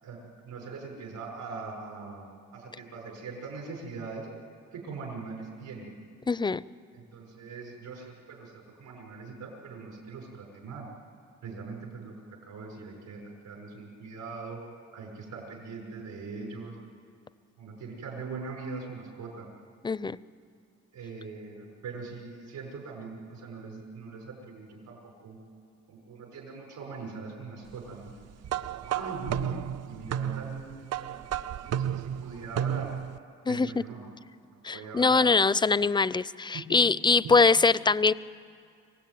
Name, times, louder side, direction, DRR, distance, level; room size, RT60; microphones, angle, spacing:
voice 1, 0.0-4.3 4.7-5.9 6.9-10.9 11.4-12.1 12.4-14.6 14.9-16.8 17.6-19.5 20.9-25.0 25.2-25.4 25.9-28.1 28.7-29.6 29.8-31.2 31.6-32.9 33.5-34.1 34.5-35.3 36.5-36.6 37.2-37.3, right 4 dB, 80° right, 0 dB, 6.2 m, -41 dB
voice 2, 6.3-6.6 19.8-20.2 33.5-33.7 34.6-38.1, left 4 dB, 15° left, 19 dB, 0.5 m, -23 dB
sound 1, 28.4-33.2, right 10 dB, 55° right, 0.6 m, -32 dB
25.5 x 16.0 x 9.5 m, 2.3 s
cardioid pair, 90°, 30 cm